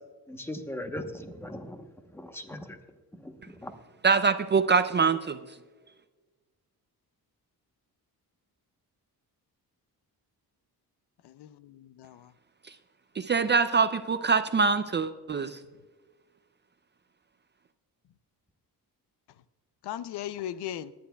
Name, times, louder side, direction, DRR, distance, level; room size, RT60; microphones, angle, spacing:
voice 1, 0.3-1.8 2.1-2.8 3.1-3.7, left 1 dB, 5° left, 6 dB, 0.9 m, -39 dB
voice 2, 4.0-5.4 13.2-15.6, right 5 dB, 30° right, 10 dB, 0.4 m, -24 dB
voice 3, 11.2-12.3 19.8-20.9, left 11 dB, 90° left, 15 dB, 0.6 m, -38 dB
20.5 x 10.5 x 2.3 m, 1.3 s
wide cardioid pair, 145°, 39 cm